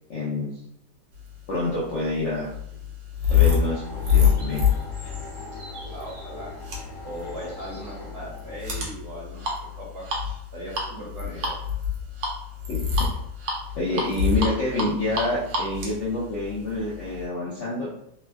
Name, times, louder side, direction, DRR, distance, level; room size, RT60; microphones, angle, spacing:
voice 1, 0.1-0.5 1.5-2.5 3.3-4.7 12.7-13.0 13.7-17.9, left 2 dB, 65° left, -6 dB, 0.7 m, -27 dB
sound 1, 1.6-17.2, left 6 dB, 85° right, 1.4 m, -26 dB
sound 2, 2.5-8.5 9.0-9.1, right 1 dB, 65° right, 1.6 m, -50 dB
sound 3, 3.3-8.6, left 1 dB, 85° left, 1.2 m, -41 dB
voice 2, 5.8-6.5 7.0-10.0 10.5-11.6, right 1 dB, 45° right, -6 dB, 1.1 m, -38 dB
3.3 x 2.2 x 2.2 m, 0.75 s
omnidirectional pair, 1.8 m